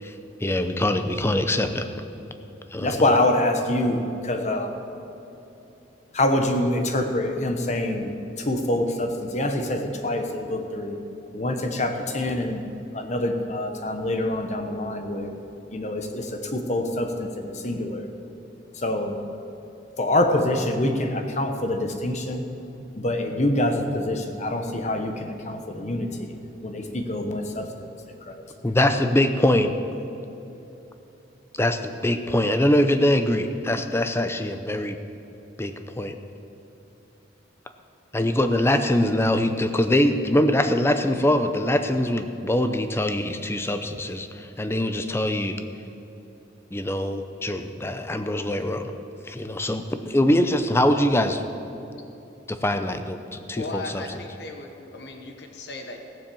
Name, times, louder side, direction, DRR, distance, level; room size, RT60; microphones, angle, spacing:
voice 1, 0.0-1.9 2.7-3.1 28.6-29.7 31.5-35.0 35.6-36.2 38.1-45.6 46.7-48.9 49.2-51.4 52.5-54.0, left 1 dB, 15° left, 8 dB, 0.6 m, -23 dB
voice 2, 2.8-4.8 6.1-11.0 11.3-12.6 12.9-15.3 15.7-18.1 18.7-19.2 20.0-22.5 22.9-27.9 28.2-28.4, left 1 dB, 40° left, 5 dB, 1.0 m, -25 dB
voice 3, 53.6-56.0, left 2 dB, 65° left, 4 dB, 1.1 m, -37 dB
15.5 x 7.4 x 7.0 m, 3.0 s
head